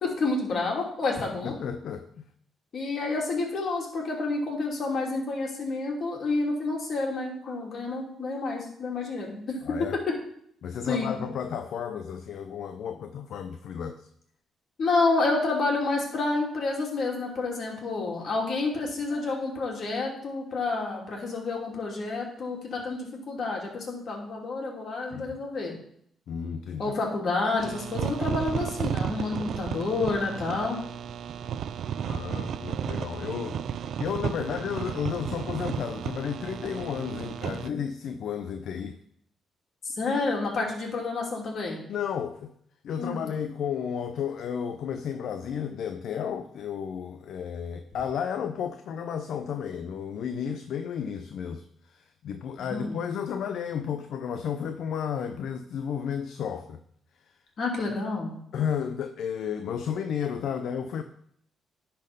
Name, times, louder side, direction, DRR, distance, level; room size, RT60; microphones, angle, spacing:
voice 1, 0.0-1.5 2.7-10.2 10.9-11.1 14.8-25.7 26.8-30.8 40.0-41.8 43.0-43.4 52.6-53.0 57.6-58.4, left 3 dB, 55° left, 2.7 m, -29 dB
voice 2, 1.4-2.2 9.6-10.0 10.6-14.1 25.1-25.4 26.3-27.0 32.0-39.0 41.9-42.5 42.8-56.8 57.3-57.4 58.5-61.0, left 8 dB, 70° left, 0.5 m, -33 dB
sound 1, 27.6-37.7, right 8 dB, 65° right, 0.4 m, -33 dB
10.5 x 4.4 x 5.4 m
cardioid pair, 70°, 0 cm